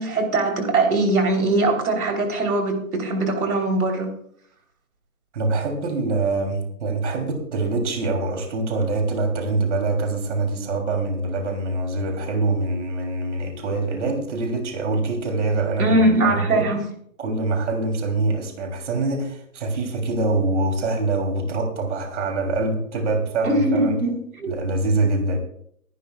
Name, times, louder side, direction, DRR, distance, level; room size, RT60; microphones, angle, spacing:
voice 1, 0.0-4.1 15.8-16.8 23.4-24.1 24.4-24.6, right 2 dB, 85° right, 3 dB, 3.6 m, -21 dB
voice 2, 5.3-16.7 17.2-23.9 24.5-25.4, right 3 dB, 55° right, 3 dB, 3.2 m, -24 dB
22.5 x 11.0 x 2.3 m, 0.66 s
hypercardioid pair, 165°, 42 cm